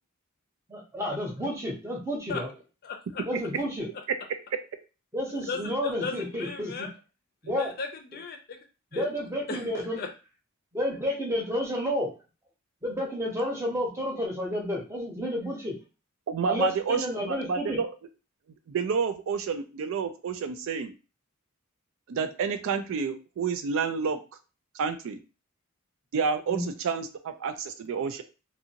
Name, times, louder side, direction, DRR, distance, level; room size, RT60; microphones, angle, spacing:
voice 1, 0.7-2.5 3.3-3.9 5.1-6.7 7.4-7.7 8.9-10.0 10.7-12.1 12.8-15.7 16.5-17.8 26.5-26.7, equal, 15° right, -1 dB, 0.8 m, -30 dB
voice 2, 2.8-3.2 5.3-6.9 7.6-8.6 8.9-9.1 9.5-9.7 10.0-10.1, left 4 dB, 45° left, 5 dB, 0.5 m, -36 dB
voice 3, 16.3-17.9 18.7-20.9 22.1-24.2 24.7-25.2 26.1-28.2, right 5 dB, 70° right, 9 dB, 0.4 m, -29 dB
2.6 x 2.5 x 2.8 m, 0.32 s
head